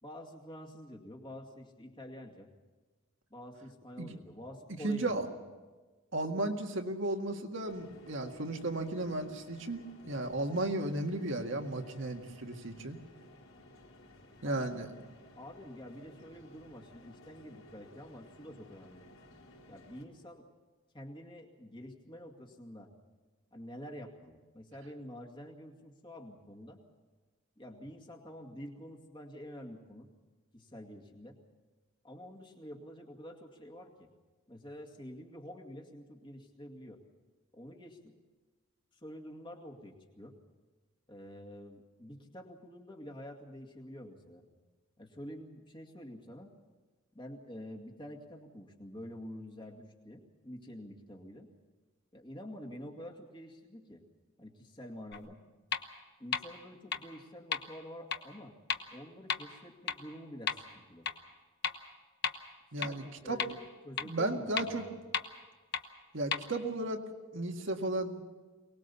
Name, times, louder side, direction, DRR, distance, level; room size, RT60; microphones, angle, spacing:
voice 1, 0.0-2.5 3.3-5.4 14.4-14.9 15.4-19.1 19.7-20.5 20.9-22.9 23.5-26.8 27.6-30.1 30.5-31.4 32.0-34.1 34.5-37.0 37.5-38.1 38.9-40.4 41.1-44.4 45.0-46.5 47.1-51.5 52.1-54.0 54.4-55.4 56.2-58.6 58.9-61.1 62.8-65.0, equal, 20° left, 2 dB, 2.3 m, -48 dB
voice 2, 4.8-5.3 6.1-13.0 14.4-14.9 62.7-63.4 64.0-64.8 66.1-67.0 67.3-68.2, right 2 dB, 60° right, 3 dB, 1.9 m, -34 dB
sound 1, 7.7-20.0, left 1 dB, 70° left, 4.2 m, -57 dB
sound 2, 55.1-55.2 55.7-55.8 56.3-56.4 56.9-57.0 57.5-57.6 58.1-58.2 58.7-58.8 59.3-59.4 59.9-60.0 60.5-60.6 61.1-61.2 61.6-61.7 62.2-62.3 62.8-62.9 63.4-63.5 64.0-64.1 64.6-64.7 65.1-65.2 65.7-65.8 66.3-66.4, left 7 dB, 50° left, 1.1 m, -32 dB
24.0 x 19.5 x 7.0 m, 1.3 s
head